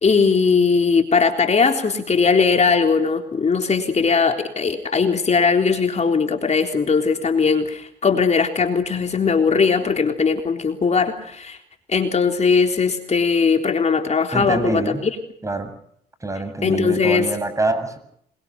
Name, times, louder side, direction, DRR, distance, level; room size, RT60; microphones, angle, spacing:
voice 1, 0.0-11.6 11.9-14.8 16.6-17.3, left 5 dB, 40° left, 4 dB, 3.7 m, -19 dB
voice 2, 14.3-15.0 15.4-15.7 16.2-18.0, right 2 dB, 20° right, 11 dB, 7.4 m, -25 dB
27.5 x 23.0 x 6.1 m, 0.69 s
cardioid pair, 75°, 17 cm